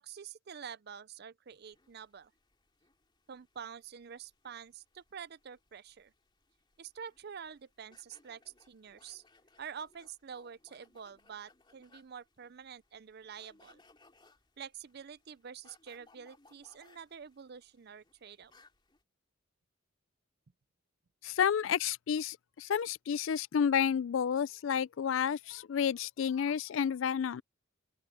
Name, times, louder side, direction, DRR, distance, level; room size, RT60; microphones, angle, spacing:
voice 1, 0.0-2.3 3.3-6.1 6.8-8.4 8.7-9.2 9.6-13.8 14.6-18.5, right 7 dB, 50° right, 0.5 m, -47 dB
sound 1, 1.5-19.0, left 3 dB, 25° left, 3.1 m, -67 dB
voice 2, 21.2-27.4, left 8 dB, 70° left, 0.4 m, -30 dB
open air
head